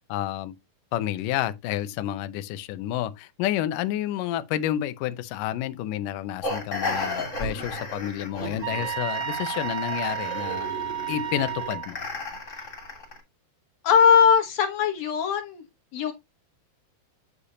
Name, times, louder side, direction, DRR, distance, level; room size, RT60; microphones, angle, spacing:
voice 1, 0.1-0.5 0.9-10.7 11.1-12.0, left 12 dB, 75° left, 2.1 m, -30 dB
sound 1, 6.4-13.2, left 2 dB, 20° left, 2.6 m, -34 dB
sound 2, 8.6-11.9, right 10 dB, 80° right, 3.3 m, -32 dB
voice 2, 13.8-15.6 15.9-16.1, left 6 dB, 60° left, 1.9 m, -20 dB
8.5 x 6.6 x 2.8 m
omnidirectional pair, 4.4 m